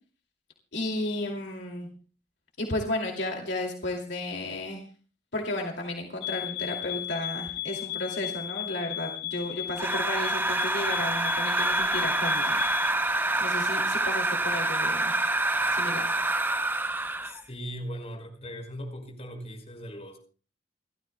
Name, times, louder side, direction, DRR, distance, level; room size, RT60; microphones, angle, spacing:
voice 1, 0.7-1.9 2.6-4.8 5.3-15.1 15.7-16.1, left 1 dB, 70° left, 1 dB, 2.6 m, -33 dB
sound 1, 6.2-13.0, left 13 dB, 85° left, 5.4 m, -35 dB
sound 2, 9.8-17.4, right 2 dB, 10° right, 0.6 m, -27 dB
voice 2, 17.2-20.2, equal, 35° left, 2 dB, 5.5 m, -39 dB
29.5 x 13.5 x 2.3 m, 0.39 s
head